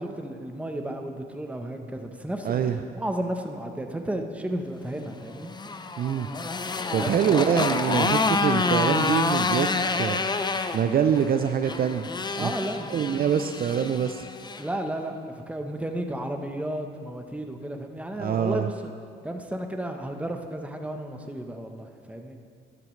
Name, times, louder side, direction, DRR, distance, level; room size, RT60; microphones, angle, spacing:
voice 1, 0.0-2.6 2.9-5.5 7.0-7.6 12.4-13.1 13.3-13.4 14.6-18.7 19.2-22.4, right 1 dB, 5° right, 4 dB, 1.0 m, -33 dB
voice 2, 2.4-2.8 6.0-6.3 6.9-10.2 10.7-12.1 12.4-12.5 12.9-14.2 18.1-18.7, right 8 dB, 50° right, 8 dB, 0.5 m, -25 dB
Motorcycle, 5.3-14.7, left 4 dB, 20° left, 0.5 m, -28 dB
12.5 x 12.0 x 3.2 m, 2.3 s
cardioid pair, 90°, 20 cm